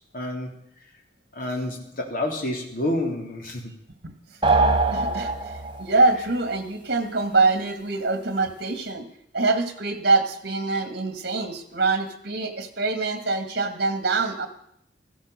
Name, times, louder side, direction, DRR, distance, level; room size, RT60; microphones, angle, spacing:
voice 1, 0.1-0.5 1.3-3.7, left 1 dB, 50° left, 1 dB, 3.3 m, -28 dB
sound 1, 4.4-5.9, right 3 dB, 25° right, 1.4 m, -22 dB
voice 2, 4.9-5.5 5.8-9.1 9.3-14.5, right 3 dB, 60° right, 8 dB, 2.3 m, -24 dB
15.0 x 13.0 x 6.8 m, 0.72 s
head